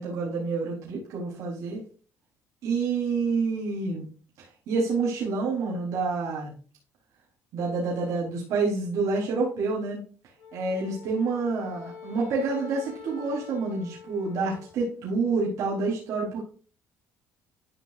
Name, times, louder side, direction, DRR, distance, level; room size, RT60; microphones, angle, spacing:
voice 1, 0.0-1.8 2.6-4.1 4.4-6.5 7.5-10.0 10.5-16.4, right 4 dB, 70° right, -4 dB, 3.9 m, -28 dB
Wind instrument woodwind instrument, 10.4-14.8, left 6 dB, 70° left, 4.3 m, -45 dB
12.5 x 5.7 x 2.6 m, 0.38 s
cardioid pair, 110°, 6 cm